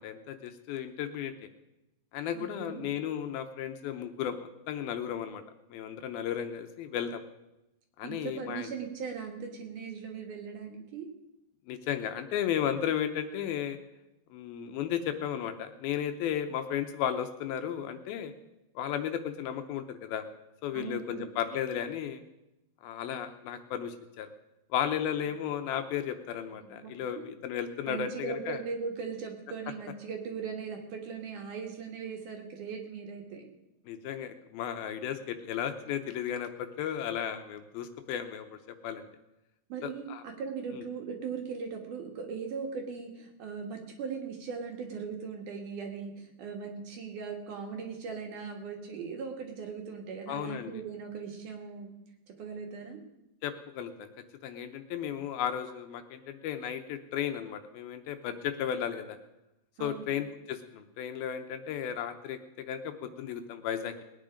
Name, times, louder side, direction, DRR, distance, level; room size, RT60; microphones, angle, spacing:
voice 1, 0.0-1.3 2.1-5.4 5.7-7.2 8.0-8.7 11.7-13.8 14.3-18.3 18.8-20.3 20.6-22.2 22.8-24.3 24.7-28.6 33.9-38.5 38.8-39.1 39.8-40.2 40.7-40.8 50.3-50.8 53.4-54.1 54.4-59.2 59.8-64.0, left 9 dB, 75° left, 7 dB, 2.5 m, -34 dB
voice 2, 2.3-2.9 8.0-11.1 20.7-21.3 26.6-26.9 27.2-27.4 27.9-33.4 39.7-52.0 52.3-53.0 59.8-60.2, right 5 dB, 60° right, 2 dB, 2.7 m, -39 dB
20.5 x 9.6 x 5.1 m, 0.94 s
omnidirectional pair, 4.6 m